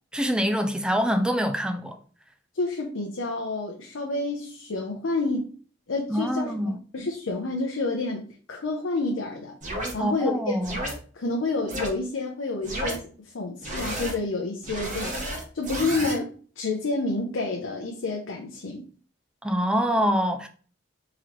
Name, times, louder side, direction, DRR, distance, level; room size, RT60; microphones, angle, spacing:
voice 1, 0.1-2.0 6.1-6.8 10.0-10.8 19.4-20.5, equal, 5° right, 0.3 m, -25 dB
voice 2, 2.5-5.5 5.9-8.2 8.5-9.6 9.9-10.5 11.1-13.1 13.3-18.8, left 3 dB, 90° left, 0.6 m, -29 dB
sound 1, 9.6-9.9 10.6-10.9 11.7-11.9 12.6-13.0 13.6-14.1 14.6-16.2, right 1 dB, 40° right, 0.9 m, -31 dB
3.8 x 2.9 x 3.1 m
head